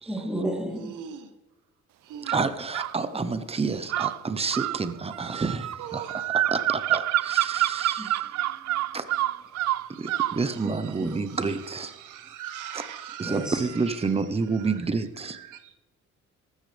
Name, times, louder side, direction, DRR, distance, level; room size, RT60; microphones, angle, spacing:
voice 1, 0.0-0.9 8.0-8.1 10.6-11.2 13.2-13.7, right 1 dB, 5° right, -2 dB, 3.2 m, -32 dB
voice 2, 0.7-1.3 2.0-2.5 3.7-3.9 4.9-5.5 5.8-6.3 9.4-15.8, right 9 dB, 85° right, 9 dB, 1.1 m, -43 dB
voice 3, 2.3-6.0 6.5-8.3 8.9-9.0 10.0-11.9 13.2-15.4, right 4 dB, 20° right, 11 dB, 0.9 m, -29 dB
sound 1, 2.3-3.0 3.9-10.4, right 14 dB, 60° right, 0.5 m, -27 dB
14.0 x 13.0 x 3.4 m, 0.98 s
cardioid pair, 90°, 30 cm